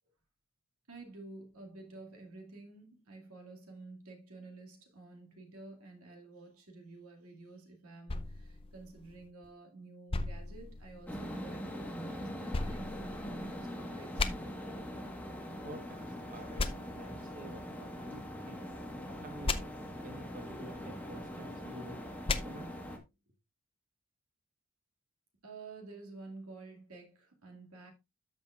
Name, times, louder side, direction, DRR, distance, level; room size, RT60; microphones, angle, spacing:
voice 1, 0.9-14.3 25.4-27.9, right 3 dB, 75° right, 2.3 m, -51 dB
sound 1, 8.1-9.5 10.1-11.3 12.5-13.7 14.2-14.3 16.6-16.7 19.4-19.6 22.3-22.4, left 3 dB, 25° left, 0.5 m, -35 dB
sound 2, 11.1-23.0, equal, 5° left, 1.3 m, -42 dB
voice 2, 15.6-18.7 19.2-19.7 20.0-22.0 22.3-22.8 23.3-23.4, right 1 dB, 40° right, 1.2 m, -49 dB
13.0 x 5.4 x 2.4 m
head